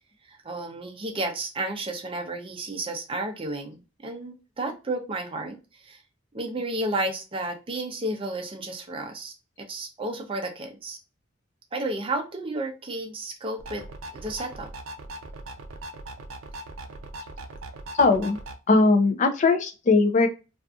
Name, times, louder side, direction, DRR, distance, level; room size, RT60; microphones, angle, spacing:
voice 1, 0.3-6.0 6.3-11.0 11.7-13.8 14.1-14.7, right 2 dB, 25° right, 3 dB, 0.5 m, -32 dB
sound 1, 13.6-18.6, right 2 dB, 85° right, 0.5 m, -40 dB
voice 2, 18.0-18.4 18.7-20.3, left 3 dB, 40° left, 5 dB, 0.4 m, -19 dB
2.6 x 2.4 x 2.3 m, 0.30 s
head